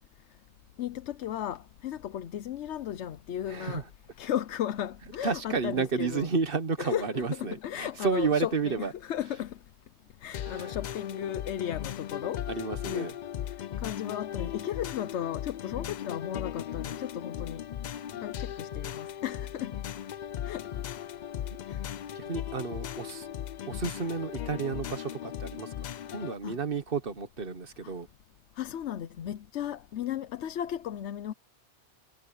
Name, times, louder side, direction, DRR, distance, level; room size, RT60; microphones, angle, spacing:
voice 1, 0.8-3.8 4.2-6.3 6.8-9.6 10.2-13.1 13.8-17.6 18.2-19.7 20.4-20.7 21.7-21.8 26.4-26.6 27.8-27.9 28.6-31.3, left 10 dB, 90° left, 1.0 m, -35 dB
voice 2, 3.5-3.8 5.2-8.9 10.4-10.8 12.2-13.1 22.1-23.3 23.7-25.7 26.1-28.1, right 5 dB, 55° right, 1.4 m, -31 dB
sound 1, 10.3-26.3, left 10 dB, 60° left, 0.5 m, -37 dB
omnidirectional pair, 1.1 m